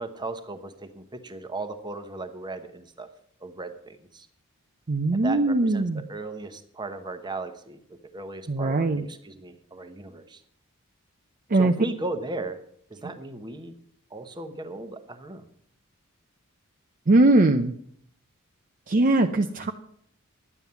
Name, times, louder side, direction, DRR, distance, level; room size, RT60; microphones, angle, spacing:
voice 1, 0.0-3.1 3.4-4.3 5.1-10.4 11.5-12.6 12.9-13.7 14.1-15.4, right 2 dB, 20° right, 8 dB, 1.0 m, -36 dB
voice 2, 4.9-6.0 8.5-9.1 11.5-11.7 17.1-17.7 18.9-19.7, right 2 dB, 40° right, 5 dB, 0.6 m, -21 dB
11.0 x 9.1 x 6.9 m, 0.66 s
head